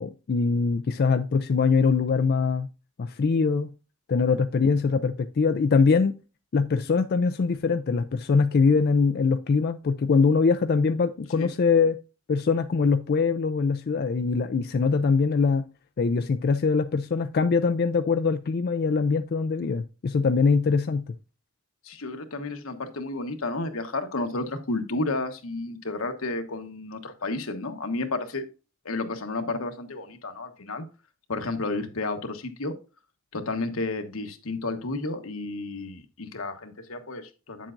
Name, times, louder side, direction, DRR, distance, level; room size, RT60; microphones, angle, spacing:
voice 1, 0.0-2.7 3.0-3.7 4.1-6.2 6.5-12.0 12.3-15.6 16.0-21.1, left 4 dB, 50° left, 0.4 m, -23 dB
voice 2, 21.8-28.4 28.8-30.8 31.3-32.7 33.3-37.7, left 2 dB, 85° left, 1.2 m, -32 dB
8.7 x 7.4 x 2.5 m
head